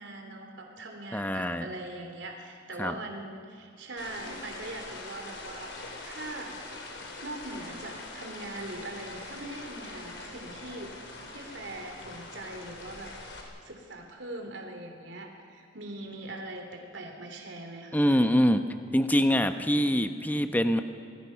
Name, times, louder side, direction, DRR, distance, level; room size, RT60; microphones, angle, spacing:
voice 1, 0.0-5.7 6.0-6.6 7.2-10.9 11.3-13.1 13.6-18.2, right 2 dB, 80° right, 3 dB, 3.2 m, -41 dB
voice 2, 1.1-1.7 2.8-2.9 17.9-18.6 18.9-20.8, equal, 10° left, 8 dB, 1.0 m, -24 dB
sound 1, 4.0-13.4, left 2 dB, 80° left, 4.2 m, -43 dB
27.0 x 20.0 x 5.9 m, 2.5 s
head